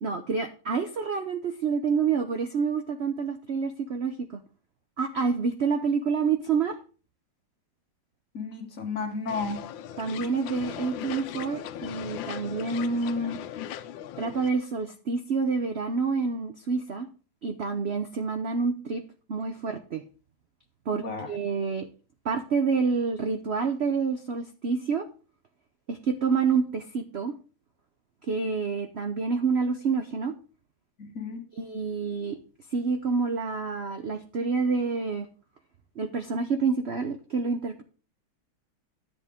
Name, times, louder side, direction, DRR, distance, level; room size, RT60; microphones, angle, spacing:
voice 1, 0.0-4.4 5.0-6.7 10.0-13.4 14.2-17.1 17.4-19.0 19.3-20.0 20.9-21.9 22.2-25.0 25.9-27.3 28.3-30.3 31.6-32.4 32.7-35.3 36.0-37.8, right 5 dB, 70° right, 0.6 m, -28 dB
voice 2, 8.3-9.7 20.9-21.3 31.0-31.4, left 4 dB, 45° left, 1.5 m, -33 dB
sound 1, 9.3-14.5, left 10 dB, 75° left, 1.3 m, -38 dB
10.5 x 8.1 x 3.6 m
omnidirectional pair, 2.2 m